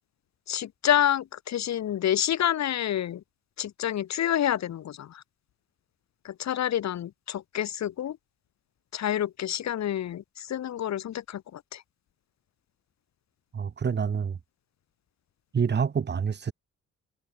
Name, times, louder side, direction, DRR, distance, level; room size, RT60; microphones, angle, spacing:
voice 1, 0.5-3.2 3.6-5.2 6.2-8.2 8.9-11.8, left 11 dB, 65° left, 1.7 m, -28 dB
voice 2, 13.5-14.4 15.5-16.5, right 6 dB, 35° right, 1.3 m, -27 dB
cardioid pair, 90°, 30 cm